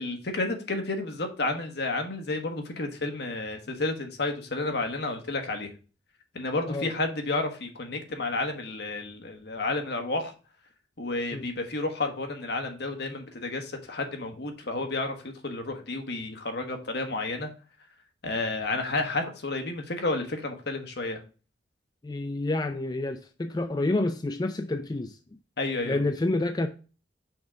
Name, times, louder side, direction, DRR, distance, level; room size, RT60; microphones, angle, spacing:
voice 1, 0.0-5.7 6.3-10.3 11.0-17.5 18.2-21.2 25.6-26.0, left 2 dB, 60° left, 1.2 m, -31 dB
voice 2, 22.0-25.2 25.9-26.7, left 2 dB, 20° left, 0.4 m, -28 dB
6.0 x 3.6 x 5.1 m
head